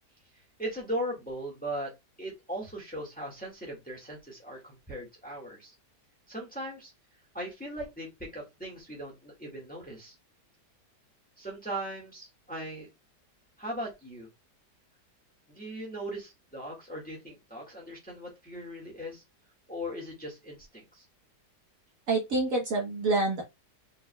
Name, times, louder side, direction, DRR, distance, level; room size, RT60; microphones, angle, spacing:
voice 1, 0.6-1.9 2.2-5.7 6.3-6.9 7.3-10.1 11.4-12.9 13.6-14.3 15.5-19.2 19.7-21.0, equal, 5° left, 1.5 m, -38 dB
voice 2, 22.1-23.4, right 2 dB, 55° right, 1.3 m, -27 dB
4.8 x 3.9 x 2.2 m
omnidirectional pair, 1.8 m